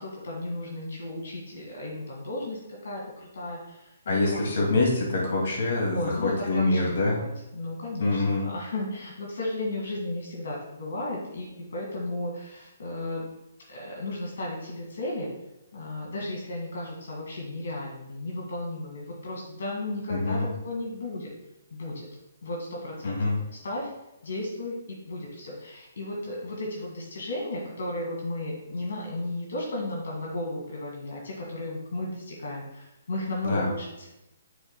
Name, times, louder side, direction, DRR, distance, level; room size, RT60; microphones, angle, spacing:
voice 1, 0.0-3.0 3.3-3.8 5.9-7.3 7.5-13.2 13.7-15.3 15.7-20.4 20.6-21.3 21.7-22.1 22.4-23.2 23.5-23.9 24.2-34.1, left 1 dB, 80° left, -2 dB, 1.8 m, -34 dB
voice 2, 4.1-7.2 8.0-8.4 20.1-20.5 23.0-23.4 33.4-33.7, left 2 dB, 60° left, -1 dB, 2.2 m, -25 dB
10.0 x 4.7 x 2.2 m, 0.93 s
hypercardioid pair, 165°, 0 cm